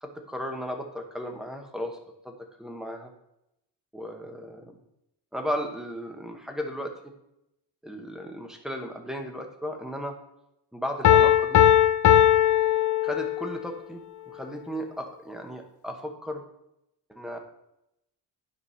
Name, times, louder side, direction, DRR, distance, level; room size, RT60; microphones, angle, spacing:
voice 1, 0.0-2.0 2.2-2.3 2.6-3.1 3.9-4.8 5.3-7.1 7.8-10.2 10.7-11.7 13.0-16.4 17.1-17.4, equal, ahead, 3 dB, 1.0 m, -35 dB
Piano, 11.0-13.6, left 11 dB, 45° left, 0.4 m, -19 dB
9.8 x 4.8 x 5.7 m, 0.82 s
wide cardioid pair, 175°, 45 cm